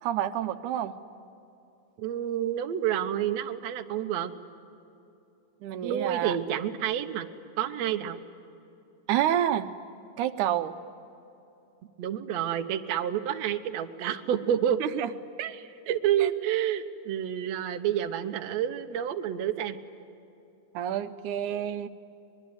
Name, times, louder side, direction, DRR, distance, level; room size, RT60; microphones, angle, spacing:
voice 1, 0.0-1.0 5.6-6.4 9.1-9.7 10.2-10.7 14.8-15.1 16.2-16.3 20.7-21.9, right 11 dB, 85° right, 10 dB, 2.2 m, -28 dB
voice 2, 2.0-4.3 5.8-7.3 7.6-8.2 12.0-14.8 15.4-19.8, right 10 dB, 70° right, 6 dB, 2.1 m, -29 dB
24.0 x 22.0 x 9.6 m, 2.8 s
omnidirectional pair, 3.4 m